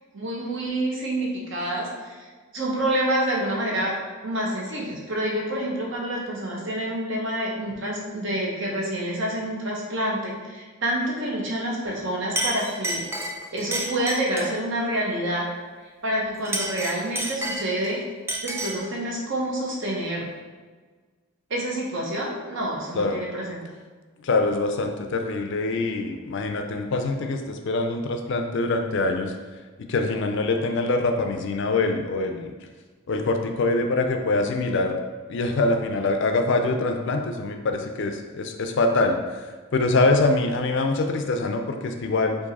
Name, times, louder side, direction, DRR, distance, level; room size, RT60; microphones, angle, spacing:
voice 1, 0.1-2.3 2.5-3.9 4.2-13.0 13.5-15.4 16.0-18.0 18.4-20.3 21.5-23.6, right 1 dB, 55° right, -3 dB, 1.0 m, -27 dB
Chink clink, 11.9-12.0 12.4-14.6 16.3-17.9 18.3-18.9, right 1 dB, 10° right, 0.4 m, -30 dB
voice 2, 24.2-29.3 29.8-32.5 33.1-35.0 35.3-39.4 39.7-42.4, left 2 dB, 55° left, 5 dB, 0.4 m, -24 dB
4.6 x 2.6 x 4.1 m, 1.4 s
head